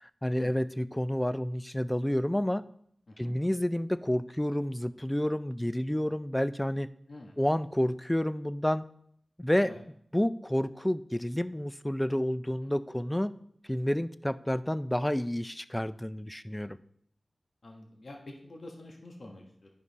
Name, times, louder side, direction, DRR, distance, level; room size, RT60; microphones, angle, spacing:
voice 1, 0.0-2.6 3.2-6.9 7.4-8.8 9.4-9.7 10.1-13.3 13.7-16.8, left 1 dB, 10° left, 14 dB, 0.4 m, -29 dB
voice 2, 17.6-19.7, left 1 dB, 70° left, 1 dB, 1.4 m, -47 dB
11.0 x 5.3 x 4.1 m, 0.67 s
cardioid pair, 50°, 0 cm